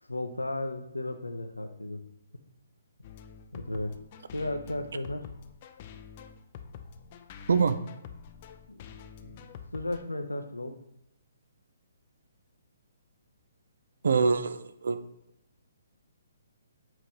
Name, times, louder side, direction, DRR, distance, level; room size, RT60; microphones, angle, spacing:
voice 1, 0.1-2.0 3.5-4.0 4.3-5.3 8.7-8.8 9.2-9.4 9.7-10.8, left 1 dB, 85° left, 5 dB, 0.6 m, -34 dB
sound 1, 3.0-10.0, left 7 dB, 35° left, 0.5 m, -47 dB
voice 2, 14.0-15.0, right 5 dB, 60° right, 12 dB, 0.5 m, -24 dB
7.6 x 4.9 x 2.9 m, 0.83 s
figure-of-eight pair, 130°, 0 cm